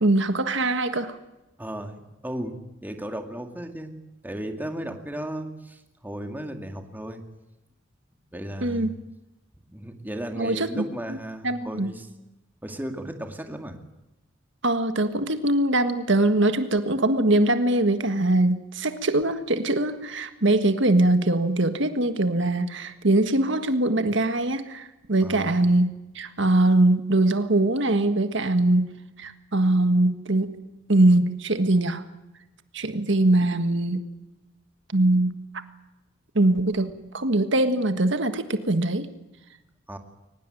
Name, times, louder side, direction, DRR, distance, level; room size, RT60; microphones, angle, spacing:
voice 1, 0.0-1.2 8.6-8.9 10.4-10.8 11.4-11.9 14.6-25.9 26.2-28.9 29.2-30.5 30.9-32.0 32.7-34.0 34.9-35.4 36.4-39.1, right 2 dB, 65° right, 9 dB, 1.6 m, -22 dB
voice 2, 1.6-2.6 2.8-4.0 4.2-7.2 8.3-8.9 9.7-12.1 12.6-13.8 25.2-25.6 39.9-40.0, right 1 dB, 10° right, 5 dB, 2.2 m, -35 dB
23.0 x 20.0 x 9.2 m, 0.98 s
head